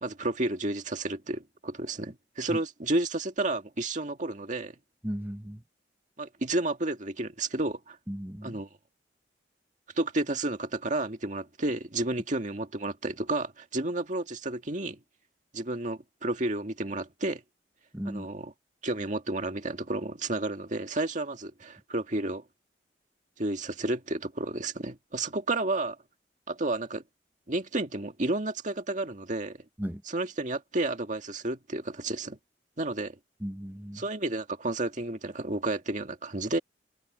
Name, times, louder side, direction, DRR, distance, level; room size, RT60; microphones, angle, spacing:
voice 1, 0.0-4.7 6.2-8.0 8.4-8.7 10.0-15.0 15.5-17.4 18.1-18.5 18.8-22.4 23.4-26.0 26.5-27.0 27.5-29.6 30.1-32.4 32.8-33.2 34.0-36.6, right 2 dB, 45° right, 1.9 m, -31 dB
voice 2, 5.0-5.6 8.1-8.6 17.9-18.3 29.8-30.0 33.4-34.0, equal, 10° right, 1.3 m, -36 dB
head